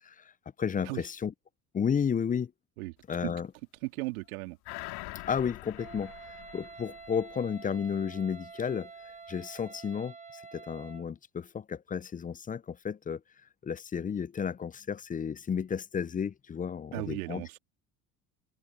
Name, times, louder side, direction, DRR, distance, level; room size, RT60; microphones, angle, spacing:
voice 1, 0.6-1.3 1.7-2.5 3.1-3.5 5.3-6.1 6.5-8.9 9.3-13.2 13.6-17.6, left 7 dB, 20° left, 0.5 m, -32 dB
voice 2, 3.8-4.6 16.9-17.6, right 22 dB, 75° right, 3.1 m, -36 dB
sound 1, 4.6-7.6 7.9-8.0, left 19 dB, 65° left, 2.8 m, -44 dB
Wind instrument woodwind instrument, 5.8-11.1, right 4 dB, 15° right, 1.7 m, -48 dB
hypercardioid pair, 65°, 43 cm